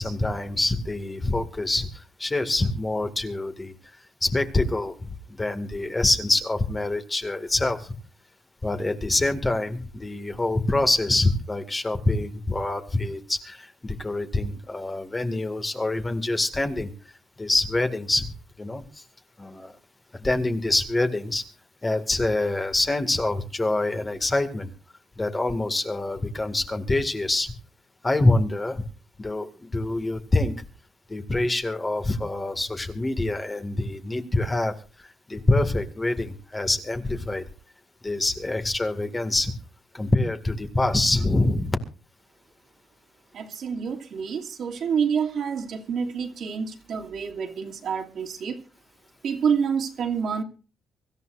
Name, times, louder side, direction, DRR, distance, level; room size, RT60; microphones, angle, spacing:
voice 1, 0.0-1.9 2.2-3.7 4.2-7.9 8.6-16.9 17.4-18.3 18.6-19.0 19.4-19.7 20.2-21.4 21.8-24.7 25.2-27.5 28.0-28.8 29.2-30.7 31.1-34.7 35.0-37.4 38.0-39.5 39.9-41.8, left 2 dB, 20° left, 2.1 m, -25 dB
voice 2, 43.3-48.6 49.2-50.4, right 6 dB, 65° right, 2.6 m, -28 dB
24.5 x 14.0 x 2.6 m
cardioid pair, 115°, 0 cm